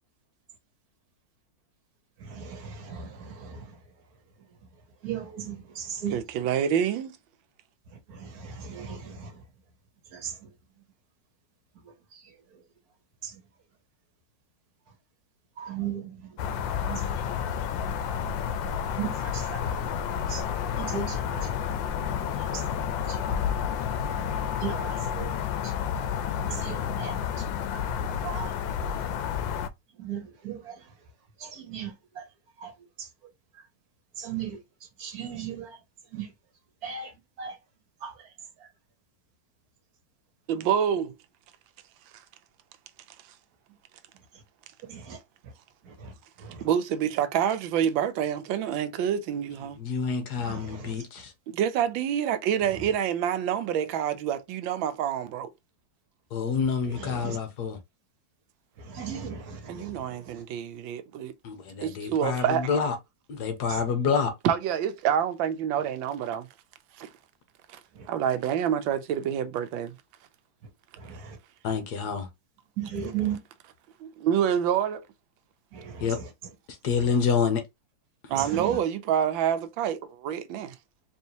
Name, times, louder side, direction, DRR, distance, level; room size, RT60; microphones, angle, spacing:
voice 1, 2.3-3.6 5.0-6.1 8.4-9.3 10.2-10.3 15.6-16.1 16.9-17.0 19.0-19.6 20.3-20.4 20.8-21.2 23.1-23.2 24.6-25.3 26.5-27.1 28.2-28.5 30.0-30.7 31.4-31.9 32.6-32.7 34.2-34.6 35.0-35.7 36.1-36.3 36.8-37.1 37.4-37.5 38.0-38.1 44.9-45.2 50.5-50.6 57.2-57.4 58.9-59.9 71.1-71.2 72.8-73.4 75.7-75.9 78.5-78.7, right 8 dB, 60° right, 1.3 m, -35 dB
voice 2, 6.1-7.2 40.5-41.1 46.6-49.8 51.5-55.5 59.7-61.3 61.8-62.8 64.4-66.5 67.0-67.1 67.7-67.8 68.1-70.0 74.0-75.0 78.3-80.7, right 9 dB, 90° right, 1.4 m, -27 dB
sound 1, 16.4-29.7, left 8 dB, 80° left, 1.3 m, -30 dB
voice 3, 49.8-51.3 56.3-57.8 61.4-63.0 63.3-64.3 71.6-72.3 76.0-76.2 76.8-77.6, left 6 dB, 65° left, 1.4 m, -27 dB
4.4 x 3.0 x 2.8 m
omnidirectional pair, 2.0 m